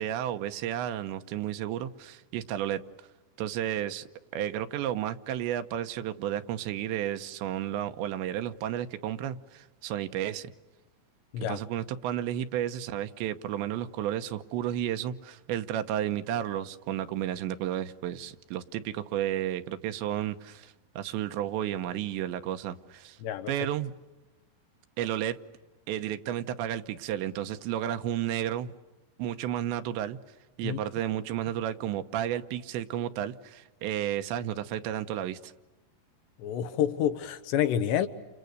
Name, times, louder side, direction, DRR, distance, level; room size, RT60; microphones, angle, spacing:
voice 1, 0.0-3.1 3.4-4.0 4.3-10.5 11.5-23.2 23.5-23.9 25.0-25.4 25.9-28.7 29.2-30.2 30.6-35.5, right 11 dB, 85° right, 3.3 m, -32 dB
voice 2, 36.4-38.1, left 10 dB, 80° left, 3.4 m, -28 dB
30.0 x 29.5 x 6.7 m
omnidirectional pair, 5.1 m